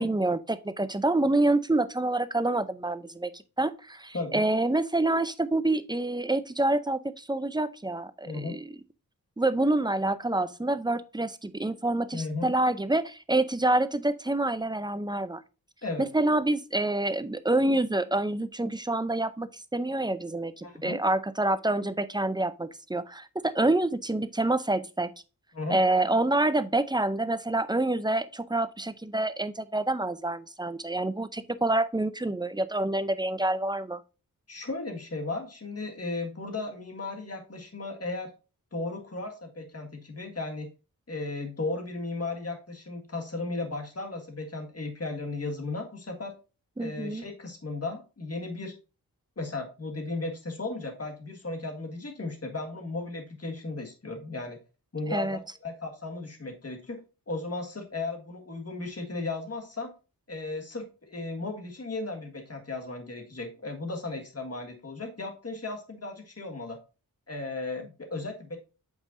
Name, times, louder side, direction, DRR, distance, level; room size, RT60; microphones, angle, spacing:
voice 1, 0.0-8.7 9.4-15.4 16.0-25.1 25.7-34.0 46.8-47.2 55.1-55.4, right 2 dB, 10° right, 0.5 m, -27 dB
voice 2, 4.1-4.4 8.3-8.6 12.1-12.5 15.8-16.1 20.6-21.0 25.5-25.8 34.5-38.3 38.7-40.7 41.1-46.3 46.8-48.8 49.4-54.6 54.9-57.0 57.3-59.9 60.3-66.8 67.3-68.6, left 3 dB, 45° left, 1.7 m, -35 dB
7.9 x 5.5 x 2.6 m
wide cardioid pair, 90°, 35 cm